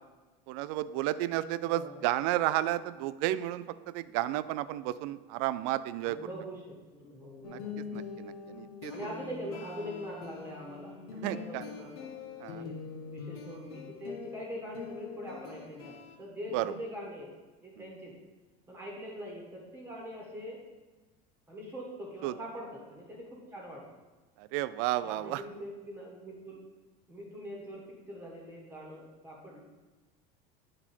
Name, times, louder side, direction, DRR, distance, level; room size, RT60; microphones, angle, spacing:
voice 1, 0.5-6.2 7.4-7.6 7.9-8.9 11.2-11.6 12.4-12.6 16.5-16.7 22.2-22.4 24.4-25.4, right 14 dB, 60° right, 15 dB, 0.4 m, -32 dB
voice 2, 1.7-2.0 6.0-7.9 8.9-12.1 12.5-12.7 13.1-15.9 16.2-17.3 17.6-18.1 18.7-20.6 21.5-23.8 25.0-26.6 27.1-29.6, equal, 10° right, -3 dB, 1.3 m, -43 dB
sound 1, 7.4-16.2, left 6 dB, 90° left, 1.2 m, -44 dB
8.9 x 4.3 x 4.4 m, 1.2 s
cardioid pair, 160°, 19 cm